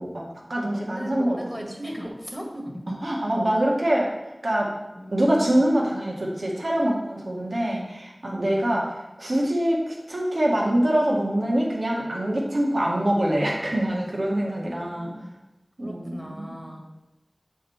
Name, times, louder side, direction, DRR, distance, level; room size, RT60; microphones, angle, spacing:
voice 1, 0.0-1.7 2.9-4.1 4.4-4.7 5.1-15.1 15.8-16.5, right 1 dB, 80° right, -3 dB, 1.8 m, -24 dB
voice 2, 0.6-2.8 5.0-5.6 8.2-8.6 14.4-14.5 15.0-15.3 15.8-16.8, equal, 10° right, 0 dB, 1.8 m, -38 dB
7.6 x 5.4 x 4.5 m, 0.99 s
wide cardioid pair, 45°, 0 cm